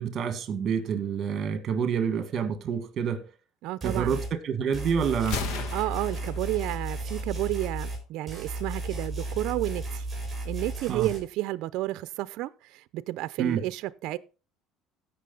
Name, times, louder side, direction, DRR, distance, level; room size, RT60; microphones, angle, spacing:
voice 1, 0.0-3.3 3.8-5.4 10.9-11.1 13.4-13.6, right 7 dB, 35° right, 1.8 m, -28 dB
voice 2, 3.6-4.2 5.7-10.1 10.4-14.2, right 16 dB, 65° right, 0.6 m, -31 dB
sound 1, 3.8-4.3 4.7-8.0 8.3-11.2, right 2 dB, 5° right, 6.1 m, -34 dB
Gunshot gunfire, 5.2-7.2, left 6 dB, 75° left, 1.4 m, -37 dB
16.0 x 6.1 x 4.0 m
cardioid pair, 150°, 0 cm